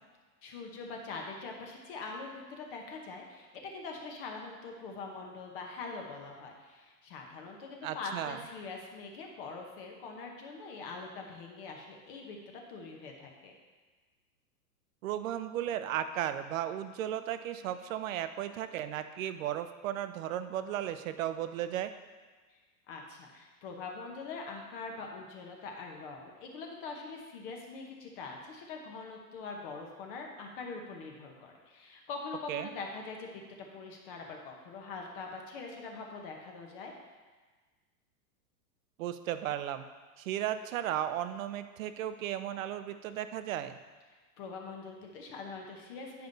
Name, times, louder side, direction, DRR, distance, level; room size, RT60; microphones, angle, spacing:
voice 1, 0.4-13.5 22.9-33.4 33.7-36.9 44.4-46.3, left 4 dB, 35° left, 1 dB, 0.9 m, -43 dB
voice 2, 7.8-8.4 15.0-21.9 32.5-32.7 39.0-39.8 40.2-43.8, right 11 dB, 60° right, 11 dB, 0.6 m, -35 dB
9.2 x 5.3 x 3.9 m, 1.4 s
supercardioid pair, 165°, 47 cm